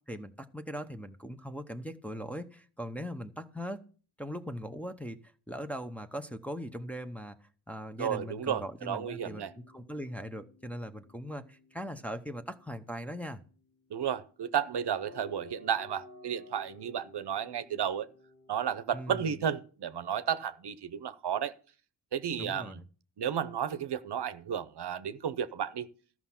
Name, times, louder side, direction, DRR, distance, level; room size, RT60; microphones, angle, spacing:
voice 1, 0.1-3.8 4.2-13.4 18.9-19.2 22.4-22.8, equal, 5° left, 0.8 m, -40 dB
voice 2, 8.0-9.5 13.9-18.1 18.5-21.5 22.1-22.8 23.2-25.9, right 8 dB, 70° right, 0.7 m, -33 dB
sound 1, 8.9-18.6, left 2 dB, 50° left, 2.4 m, -56 dB
13.5 x 6.0 x 5.7 m
wide cardioid pair, 95°, 41 cm